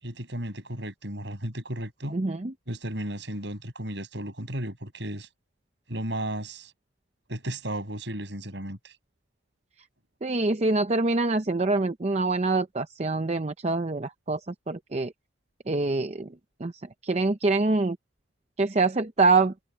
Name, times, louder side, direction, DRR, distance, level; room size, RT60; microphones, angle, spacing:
voice 1, 0.0-2.2 2.7-5.3 5.9-6.7 7.3-8.9, right 1 dB, 65° right, 7.9 m, -34 dB
voice 2, 2.1-2.5 10.2-14.4 14.7-15.1 15.7-16.3 16.6-16.7 17.0-18.0 18.6-19.5, right 3 dB, 35° right, 0.6 m, -25 dB
head